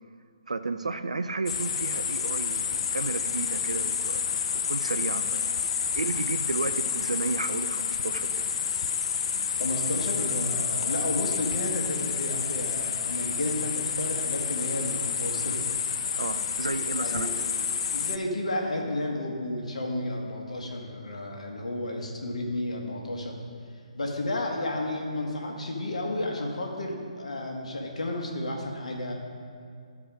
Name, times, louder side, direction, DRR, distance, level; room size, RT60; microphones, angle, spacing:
voice 1, 0.5-4.2 4.7-5.5 5.9-8.4 16.1-17.3, right 3 dB, 75° right, 10 dB, 0.5 m, -32 dB
sound 1, 1.5-18.2, left 7 dB, 50° left, 0.4 m, -29 dB
voice 2, 9.5-15.6 16.7-17.3 17.9-23.4 23.9-29.1, left 1 dB, 70° left, 1 dB, 1.6 m, -32 dB
13.0 x 4.8 x 4.9 m, 2.2 s
figure-of-eight pair, 140°, 4 cm